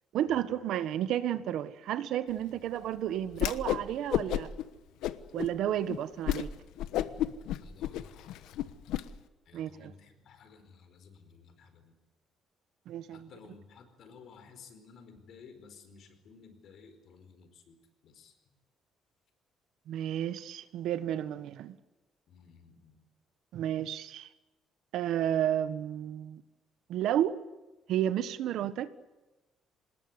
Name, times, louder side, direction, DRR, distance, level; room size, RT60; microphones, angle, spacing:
voice 1, 0.1-4.5 5.3-6.5 9.5-9.9 12.9-13.3 19.9-21.7 23.5-24.3 24.9-26.4 26.9-27.4 27.9-28.9, right 11 dB, 70° right, 1.4 m, -32 dB
Whoosh swoosh swish, 3.3-3.8 4.1-4.6 5.0-5.5 5.9-6.0 6.3-6.5 6.8-9.0, left 12 dB, 90° left, 1.2 m, -31 dB
voice 2, 7.6-8.8 9.4-12.0 13.1-18.6 22.3-23.0, left 5 dB, 55° left, 4.7 m, -55 dB
26.0 x 20.0 x 9.8 m
cardioid pair, 160°, 0 cm